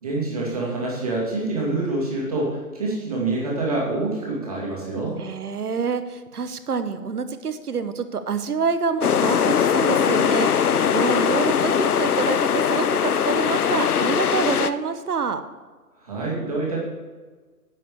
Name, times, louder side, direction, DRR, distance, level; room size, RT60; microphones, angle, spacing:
voice 1, 0.0-5.2 16.0-16.8, right 2 dB, 25° right, -4 dB, 2.4 m, -26 dB
voice 2, 5.2-15.4, right 5 dB, 75° right, 11 dB, 1.1 m, -27 dB
sound 1, 9.0-14.7, left 8 dB, 75° left, 0.7 m, -21 dB
10.5 x 5.9 x 6.8 m, 1.4 s
hypercardioid pair, 180°, 46 cm